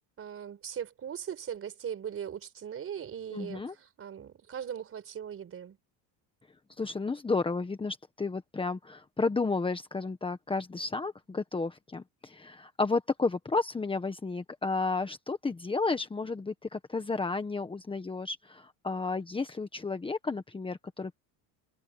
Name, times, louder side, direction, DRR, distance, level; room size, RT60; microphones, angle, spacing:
voice 1, 0.2-5.8, right 8 dB, 35° right, 4.7 m, -39 dB
voice 2, 3.3-3.7 6.8-21.2, left 3 dB, 15° left, 1.4 m, -32 dB
cardioid pair, 135°, 39 cm